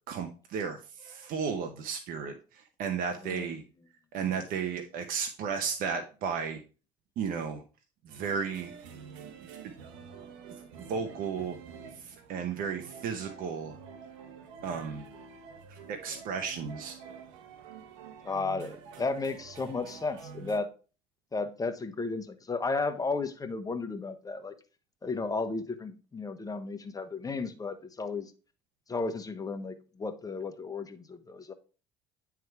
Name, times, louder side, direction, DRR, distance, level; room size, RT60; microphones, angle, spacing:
voice 1, 0.1-3.6 4.1-6.6 7.2-7.6 8.0-8.7 10.9-11.6 11.9-13.8 14.6-15.1 15.7-17.0, right 6 dB, 60° right, 5 dB, 1.0 m, -34 dB
sound 1, 8.1-20.6, right 6 dB, 85° right, 1.0 m, -48 dB
voice 2, 18.2-20.7 21.3-24.5 25.0-28.3 28.9-31.5, left 3 dB, 20° left, 9 dB, 1.1 m, -34 dB
9.3 x 3.6 x 4.7 m, 0.35 s
supercardioid pair, 80°, 16 cm